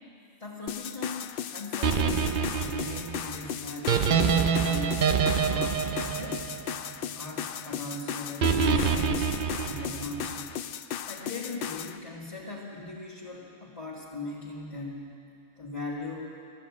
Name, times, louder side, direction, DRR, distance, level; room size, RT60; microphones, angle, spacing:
voice 1, 0.4-5.0 5.4-6.4 7.1-9.3 9.6-10.5 11.1-15.1 15.6-16.3, left 3 dB, 25° left, -8 dB, 1.8 m, -39 dB
sound 1, 0.7-12.0, left 9 dB, 80° left, 0.5 m, -36 dB
sound 2, 1.8-7.1 8.4-10.3, right 6 dB, 50° right, 0.6 m, -26 dB
13.5 x 12.5 x 8.3 m, 2.5 s
omnidirectional pair, 1.5 m